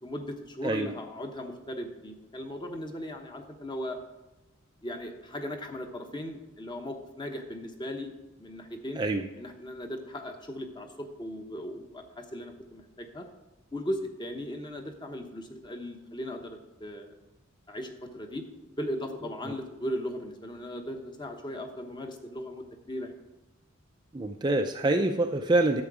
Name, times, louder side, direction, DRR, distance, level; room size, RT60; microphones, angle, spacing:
voice 1, 0.0-4.0 4.8-8.1 8.4-9.0 9.4-13.3 13.7-17.1 17.7-18.4 18.7-23.1, equal, 20° left, 4 dB, 1.0 m, -37 dB
voice 2, 24.1-25.8, right 2 dB, 20° right, 5 dB, 0.4 m, -25 dB
10.5 x 7.8 x 4.8 m, 1.0 s
head